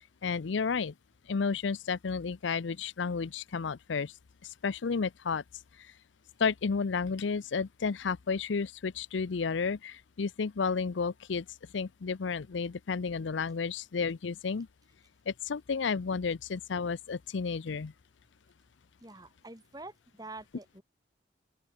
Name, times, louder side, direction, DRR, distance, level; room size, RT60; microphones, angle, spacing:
voice 1, 0.2-0.9 1.3-4.1 4.4-5.4 6.4-11.5 11.7-14.7 15.3-17.9, left 5 dB, 75° left, 0.5 m, -32 dB
voice 2, 19.0-20.8, right 2 dB, 20° right, 5.0 m, -46 dB
open air
head